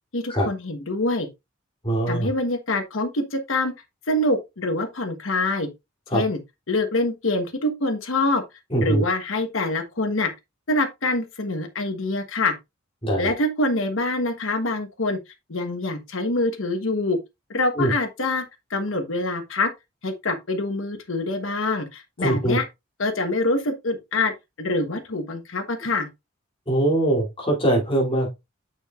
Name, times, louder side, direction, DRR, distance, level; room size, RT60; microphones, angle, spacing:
voice 1, 0.1-1.3 2.1-3.7 4.1-5.7 6.1-6.4 6.7-8.4 8.8-10.3 10.7-12.5 13.2-15.2 15.5-17.2 17.5-18.4 18.7-19.7 20.0-22.6 23.0-24.3 24.6-26.1, left 2 dB, 80° left, 1.2 m, -25 dB
voice 2, 1.8-2.3 6.1-6.2 8.7-9.0 13.0-13.3 17.8-17.9 22.2-22.6 26.7-28.3, right 1 dB, 25° left, 2.9 m, -22 dB
6.8 x 6.2 x 2.5 m
head